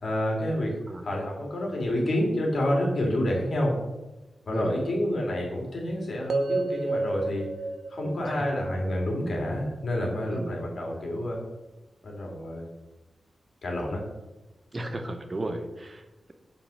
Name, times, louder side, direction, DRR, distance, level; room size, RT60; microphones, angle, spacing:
voice 1, 0.0-3.7 4.5-7.5 7.9-11.4 12.0-12.6 13.6-14.1, left 1 dB, 50° left, -1 dB, 2.7 m, -28 dB
voice 2, 4.5-4.8 8.0-8.5 10.3-11.0 14.7-16.3, right 1 dB, 25° right, 6 dB, 0.7 m, -35 dB
sound 1, 6.3-10.4, right 3 dB, 75° right, 0.5 m, -32 dB
8.4 x 5.3 x 6.4 m, 1.1 s
wide cardioid pair, 175°, 0 cm